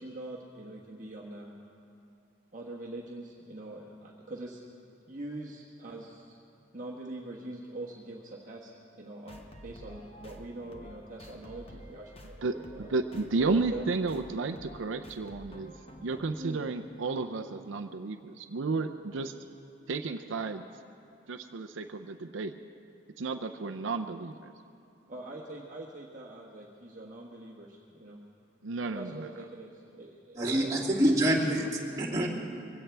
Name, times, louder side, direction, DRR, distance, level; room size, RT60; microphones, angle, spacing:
voice 1, 0.0-1.6 2.5-4.6 5.1-6.4 6.7-12.9 13.4-13.9 16.4-16.6 25.1-28.2 28.9-30.7, right 2 dB, 40° right, -3 dB, 1.2 m, -43 dB
sound 1, 9.3-16.2, equal, 30° left, 1.1 m, -50 dB
voice 2, 12.4-15.7 16.0-19.3 19.9-20.6 21.3-22.5 23.2-24.5 28.6-29.3, right 3 dB, 85° right, 6 dB, 0.6 m, -32 dB
voice 3, 30.4-32.3, right 1 dB, 20° right, -7 dB, 2.7 m, -26 dB
23.0 x 16.5 x 3.4 m, 2.6 s
head